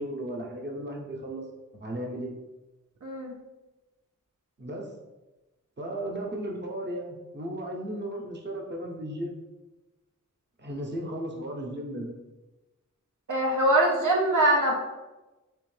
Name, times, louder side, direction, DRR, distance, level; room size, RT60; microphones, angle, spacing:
voice 1, 0.0-1.4 1.7-2.3 4.6-4.9 5.8-9.4 10.6-12.1, right 1 dB, 35° right, -1 dB, 0.8 m, -35 dB
voice 2, 3.0-3.3 13.3-14.7, right 1 dB, 70° right, -2 dB, 0.7 m, -23 dB
3.4 x 3.1 x 3.2 m, 1.1 s
wide cardioid pair, 55°, 32 cm